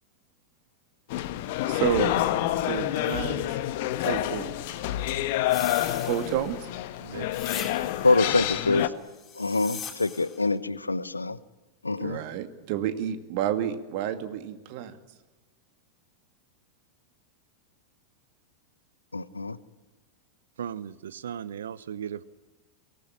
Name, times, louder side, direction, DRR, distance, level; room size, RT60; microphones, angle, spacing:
sound 1, 1.1-8.9, left 13 dB, 50° left, 1.4 m, -28 dB
voice 1, 1.7-2.1 2.6-3.6 4.0-4.5 6.0-6.7 12.0-15.0, right 11 dB, 45° right, 9 dB, 2.3 m, -30 dB
sound 2, 5.5-6.7 7.3-8.2 9.2-10.4, left 7 dB, 25° left, 4.1 m, -40 dB
voice 2, 8.0-8.9 9.4-11.4 11.8-12.2 19.1-19.6, left 3 dB, 80° left, 17 dB, 1.0 m, -25 dB
voice 3, 20.6-22.2, right 9 dB, 65° right, 19 dB, 0.8 m, -36 dB
23.5 x 18.5 x 10.0 m, 1.2 s
figure-of-eight pair, 90°, 0 cm